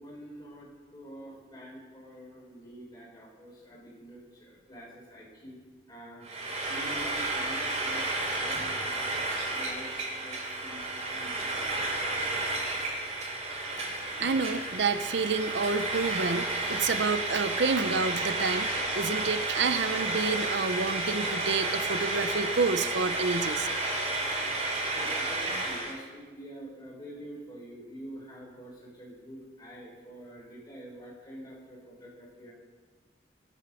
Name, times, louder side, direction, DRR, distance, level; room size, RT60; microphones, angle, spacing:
voice 1, 0.0-5.6 5.9-6.3 6.7-9.2 9.5-11.6 24.9-32.5, equal, 20° left, -5 dB, 6.1 m, -46 dB
Frying (food), 6.2-26.0, right 2 dB, 40° right, 2.9 m, -31 dB
voice 2, 14.2-18.7 18.9-23.7, right 4 dB, 75° right, 10 dB, 0.7 m, -29 dB
24.5 x 8.6 x 5.5 m, 1.4 s
head